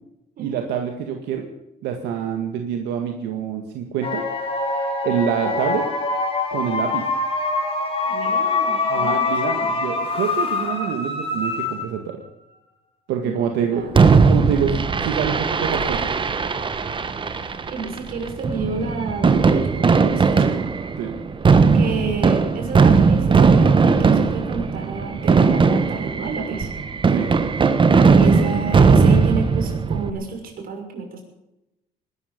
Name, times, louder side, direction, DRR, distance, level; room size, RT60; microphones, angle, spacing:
voice 1, 0.4-1.5 1.8-4.2 5.0-5.8 6.5-7.1 8.9-12.2 13.1-13.9 14.3-16.1 21.0-21.1 27.1-27.3, right 8 dB, 90° right, 4 dB, 2.0 m, -26 dB
sound 1, 4.0-12.1, left 3 dB, 30° left, 4.4 m, -24 dB
voice 2, 5.4-6.0 8.0-9.7 13.2-13.9 17.7-20.5 21.7-23.7 24.0-26.7 28.0-31.2, right 4 dB, 60° right, 3 dB, 6.2 m, -30 dB
Fireworks, 13.9-30.1, right 5 dB, 30° right, 1.5 m, -18 dB
20.5 x 13.0 x 5.3 m, 0.90 s
cardioid pair, 110°, 17 cm